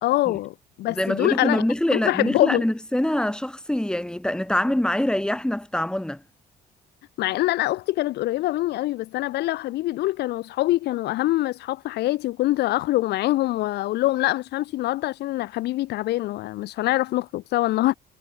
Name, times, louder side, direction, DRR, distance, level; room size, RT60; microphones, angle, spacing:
voice 1, 0.0-1.6 1.9-2.6 7.2-17.9, left 16 dB, 80° left, 2.0 m, -24 dB
voice 2, 0.9-6.2, left 1 dB, 5° left, 7.0 m, -24 dB
cardioid pair, 110°, 17 cm